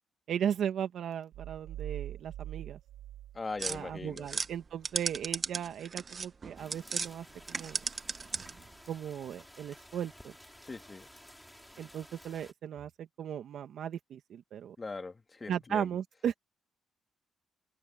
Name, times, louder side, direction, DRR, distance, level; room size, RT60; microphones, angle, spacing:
voice 1, 0.3-2.8 3.7-7.8 8.9-10.3 11.8-14.8 15.5-16.4, right 9 dB, 70° right, 1.9 m, -36 dB
sound 1, 1.3-4.0, right 13 dB, 90° right, 3.0 m, -43 dB
voice 2, 3.3-4.3 10.6-11.1 14.8-15.9, left 3 dB, 25° left, 2.6 m, -40 dB
sound 2, 3.6-7.1 7.4-8.7, right 5 dB, 35° right, 1.3 m, -36 dB
sound 3, 6.6-12.5, equal, 5° left, 6.9 m, -54 dB
open air
cardioid pair, 90°, 0 cm